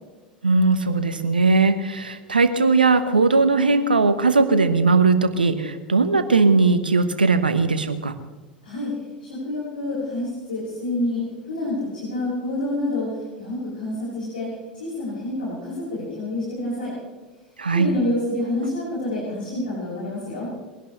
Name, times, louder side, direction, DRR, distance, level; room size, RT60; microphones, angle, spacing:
voice 1, 0.4-8.1 17.6-17.9, right 4 dB, 80° right, 10 dB, 1.2 m, -19 dB
voice 2, 9.2-16.9 17.7-20.5, left 1 dB, 75° left, -7 dB, 6.9 m, -28 dB
23.0 x 17.5 x 3.3 m, 1.3 s
figure-of-eight pair, 80°, 5 cm